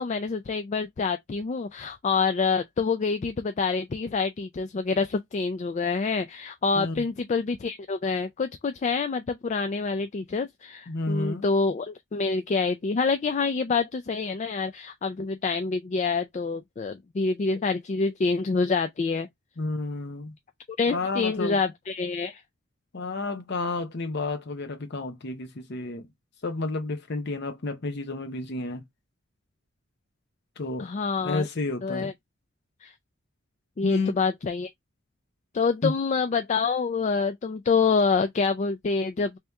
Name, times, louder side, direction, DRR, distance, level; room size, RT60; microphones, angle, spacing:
voice 1, 0.0-19.3 20.8-22.4 30.8-31.5 31.8-32.1 32.8-32.9 33.8-34.7 35.5-39.4, left 4 dB, 35° left, 0.3 m, -27 dB
voice 2, 10.9-11.4 19.6-20.4 20.9-21.6 22.9-26.1 26.4-28.8 30.6-30.9 31.2-32.1 33.8-34.1 35.8-35.9, left 3 dB, 55° left, 0.8 m, -30 dB
3.3 x 2.9 x 3.4 m
head